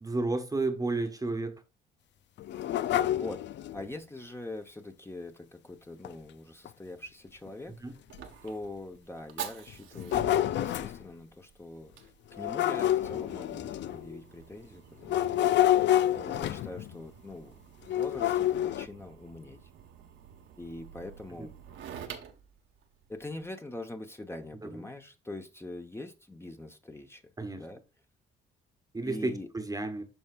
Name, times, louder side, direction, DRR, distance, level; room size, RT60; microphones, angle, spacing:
voice 1, 0.0-1.6 7.8-7.9 21.4-21.5 24.6-24.9 27.4-27.6 28.9-30.1, right 2 dB, 15° right, 1.1 m, -32 dB
sound 1, 2.4-3.8 6.0-6.1 6.7-6.8 7.5-7.6 8.1-8.2 9.7-11.0 12.3-14.2 15.0-16.9 17.9-18.9, left 12 dB, 65° left, 0.5 m, -28 dB
voice 2, 3.1-8.0 8.4-15.8 16.1-19.6 20.6-21.5 23.1-27.2 27.6-27.8 29.0-29.5, left 2 dB, 10° left, 1.1 m, -43 dB
Fire, 7.3-23.5, right 8 dB, 80° right, 1.4 m, -48 dB
12.5 x 4.4 x 2.5 m
cardioid pair, 90°, 20 cm